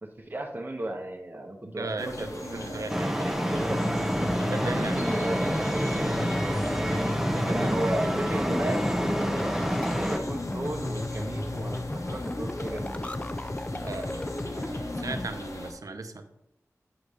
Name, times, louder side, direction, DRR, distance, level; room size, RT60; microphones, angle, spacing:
voice 1, 0.0-4.0 4.7-6.3 7.5-9.6 9.9-13.1, right 1 dB, 35° right, 1 dB, 0.9 m, -35 dB
voice 2, 1.8-3.2 4.5-5.0 7.3-7.7 13.7-16.3, right 3 dB, 85° right, 7 dB, 0.6 m, -37 dB
sound 1, 2.0-15.7, left 1 dB, 70° left, 0.9 m, -40 dB
sound 2, 2.9-10.2, equal, 5° right, 0.8 m, -28 dB
sound 3, 3.5-15.3, left 1 dB, 20° left, 0.4 m, -34 dB
8.7 x 3.3 x 5.4 m, 0.82 s
wide cardioid pair, 55°, 6 cm